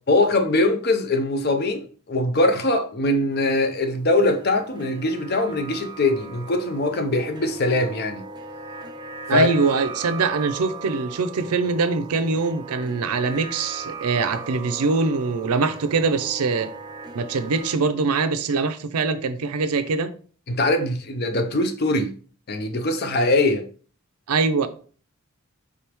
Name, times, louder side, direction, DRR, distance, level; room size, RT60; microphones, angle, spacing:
voice 1, 0.1-8.2 9.3-9.5 20.5-22.1 22.5-23.7, left 2 dB, 45° left, 0.5 m, -22 dB
sound 1, 3.3-17.7, right 3 dB, 20° right, 0.4 m, -38 dB
voice 2, 9.3-16.7 17.1-20.1 24.3-24.7, right 4 dB, 90° right, 0.5 m, -23 dB
4.8 x 3.5 x 3.0 m
head